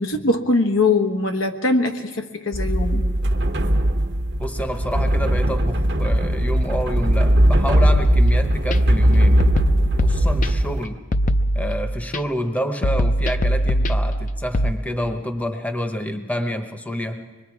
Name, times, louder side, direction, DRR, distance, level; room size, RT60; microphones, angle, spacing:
voice 1, 0.0-3.0, left 2 dB, 90° left, 4 dB, 1.4 m, -21 dB
sound 1, 2.5-10.8, right 1 dB, 60° right, 1.0 m, -19 dB
voice 2, 4.4-9.5 10.0-11.0 11.5-17.3, equal, 10° left, 6 dB, 0.9 m, -28 dB
sound 2, 7.9-8.8 9.4-10.8 11.1-12.2 12.8-14.7, equal, 40° left, 0.6 m, -21 dB
25.0 x 21.5 x 4.8 m, 1.4 s
head